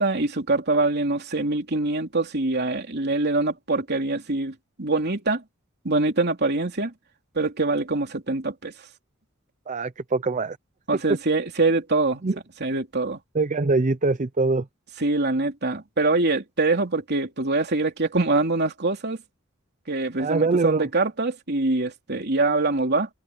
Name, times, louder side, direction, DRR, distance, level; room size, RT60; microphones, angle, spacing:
voice 1, 0.0-5.4 5.8-6.9 7.3-8.7 10.9-12.2 12.6-13.2 15.0-19.2 19.9-23.1, right 2 dB, 55° right, 3.1 m, -24 dB
voice 2, 9.7-10.6 12.2-12.4 13.3-14.7 20.2-20.9, right 3 dB, 35° right, 0.6 m, -23 dB
head